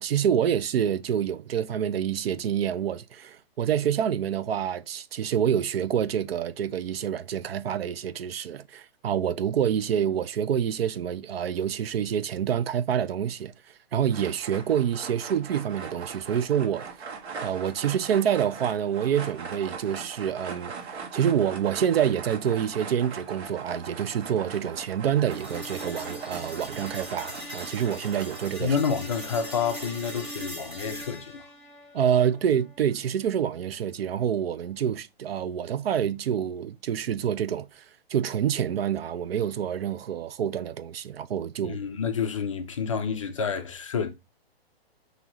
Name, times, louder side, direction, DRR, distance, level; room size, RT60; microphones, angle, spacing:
voice 1, 0.0-13.5 13.9-16.9 17.4-28.8 31.9-41.8, right 9 dB, 70° right, 0.5 m, -27 dB
sound 1, 14.1-28.5, right 5 dB, 90° right, 1.3 m, -40 dB
sound 2, 25.3-33.3, equal, 15° right, 1.2 m, -41 dB
voice 2, 28.6-31.5 41.6-44.1, left 6 dB, 35° left, 0.4 m, -29 dB
5.5 x 2.7 x 2.9 m
hypercardioid pair, 160°, 31 cm